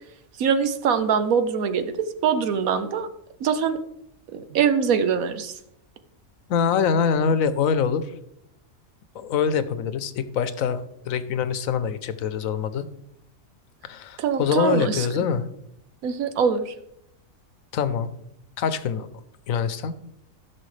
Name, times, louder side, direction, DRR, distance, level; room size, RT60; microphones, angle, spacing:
voice 1, 0.4-1.9 2.2-3.1 3.4-3.8 4.3-5.5 14.2-15.1 16.0-16.7, right 6 dB, 85° right, 9 dB, 1.2 m, -23 dB
voice 2, 6.5-8.1 9.1-12.8 13.8-15.4 17.7-18.1 18.6-19.1 19.5-19.9, left 6 dB, 75° left, 12 dB, 1.1 m, -24 dB
15.5 x 6.2 x 3.3 m, 0.78 s
omnidirectional pair, 1.4 m